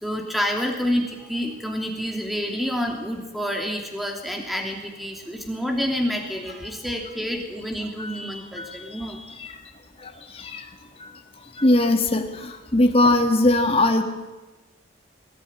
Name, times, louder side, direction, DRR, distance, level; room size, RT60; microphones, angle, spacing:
voice 1, 0.0-9.5 10.1-10.3, equal, ahead, 2 dB, 2.9 m, -28 dB
voice 2, 10.0-10.6 11.0-14.0, left 2 dB, 30° left, 4 dB, 1.8 m, -21 dB
22.5 x 15.5 x 9.7 m, 1.1 s
head